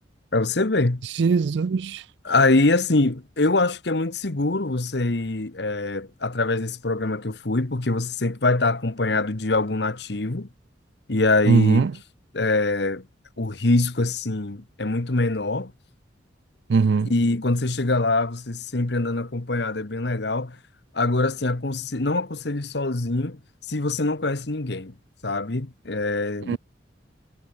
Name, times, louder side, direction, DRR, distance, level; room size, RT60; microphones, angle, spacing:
voice 1, 0.3-1.0 2.2-10.5 11.1-11.9 12.3-13.0 13.4-15.7 17.1-20.6 20.9-23.4 23.7-24.9 25.2-26.6, left 2 dB, 60° left, 1.3 m, -24 dB
voice 2, 1.2-2.0 11.5-11.9 16.7-17.1 26.5-26.6, right 5 dB, 65° right, 0.4 m, -20 dB
head